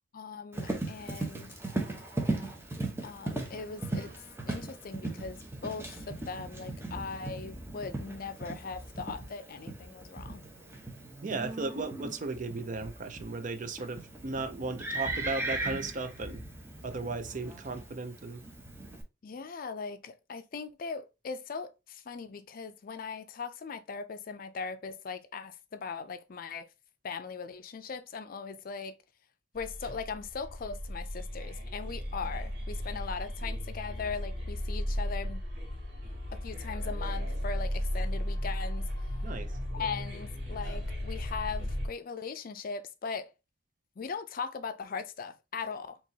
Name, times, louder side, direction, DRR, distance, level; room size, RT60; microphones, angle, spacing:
voice 1, 0.1-1.5 3.0-4.1 4.5-10.5 19.2-26.7 27.0-29.0 29.5-35.4 36.3-38.9 39.7-43.3 44.0-46.0, left 5 dB, 50° left, 0.4 m, -39 dB
Livestock farm animals working animals, 0.5-19.0, right 2 dB, 15° right, 0.9 m, -38 dB
voice 2, 11.2-16.4 16.8-18.4 39.2-39.5, right 3 dB, 45° right, 0.5 m, -36 dB
sound 1, 29.6-41.9, equal, 70° right, 1.9 m, -35 dB
4.5 x 2.9 x 2.7 m
head